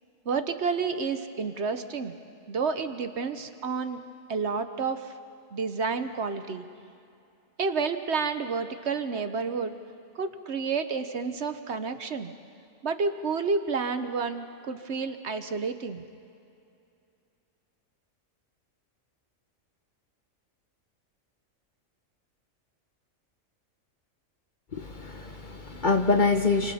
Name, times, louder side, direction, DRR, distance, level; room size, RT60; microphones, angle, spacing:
voice 1, 0.2-2.1 2.5-4.0 4.3-5.1 5.5-6.6 7.6-9.8 10.1-12.3 12.8-16.0, right 5 dB, 55° right, 9 dB, 1.1 m, -30 dB
voice 2, 24.7-26.7, left 4 dB, 40° left, 6 dB, 1.0 m, -25 dB
29.5 x 25.5 x 4.2 m, 2.6 s
omnidirectional pair, 1.4 m